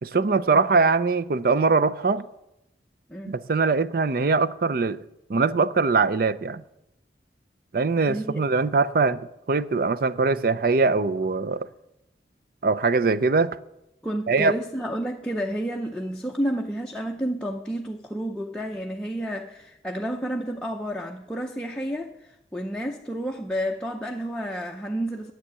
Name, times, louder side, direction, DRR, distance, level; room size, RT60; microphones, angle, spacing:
voice 1, 0.0-2.3 3.3-5.0 5.3-6.6 7.7-9.2 9.5-11.7 12.6-13.6 14.3-14.5, right 4 dB, 55° right, 0.5 m, -22 dB
voice 2, 8.1-8.4 14.0-25.3, equal, 5° left, 0.6 m, -30 dB
10.5 x 8.8 x 8.1 m
head